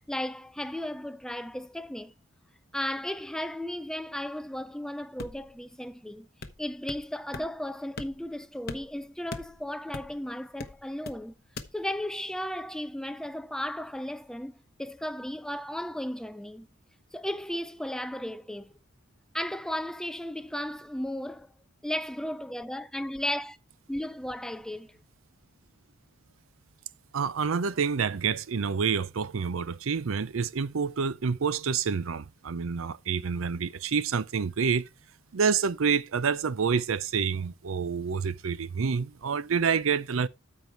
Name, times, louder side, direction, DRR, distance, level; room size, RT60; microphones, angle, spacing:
voice 1, 0.1-2.1 2.7-6.3 6.6-11.3 11.7-16.7 17.1-18.7 19.3-21.5 21.8-23.6 23.9-25.0, left 1 dB, 5° left, 0.4 m, -35 dB
sound 1, 5.2-5.6 6.4-7.1 7.3-7.5 8.0-8.4 8.7-10.2 10.6-11.2 11.6-11.7, left 2 dB, 50° left, 1.0 m, -40 dB
voice 2, 27.1-34.9 35.3-40.3, right 6 dB, 75° right, 0.5 m, -28 dB
13.0 x 4.7 x 4.5 m
head